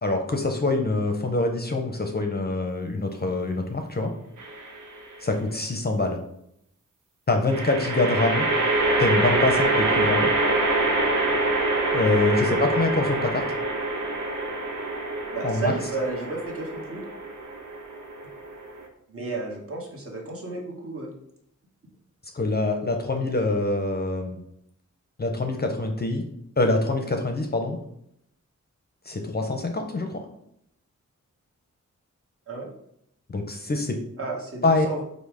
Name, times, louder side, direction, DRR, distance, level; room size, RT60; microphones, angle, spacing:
voice 1, 0.0-4.1 5.2-6.2 7.3-8.5 9.0-10.3 11.9-13.4 15.4-15.7 22.3-24.4 25.2-26.2 26.6-27.8 29.1-30.2 33.3-34.0 34.6-34.9, left 2 dB, 30° left, 4 dB, 0.6 m, -25 dB
sound 1, 4.4-5.0 7.5-18.8, right 2 dB, 85° right, 0.8 m, -25 dB
voice 2, 15.3-17.0 19.1-21.1 32.5-32.7 34.2-35.0, right 3 dB, 45° right, -1 dB, 1.1 m, -32 dB
5.3 x 2.1 x 4.8 m, 0.74 s
wide cardioid pair, 135°, 31 cm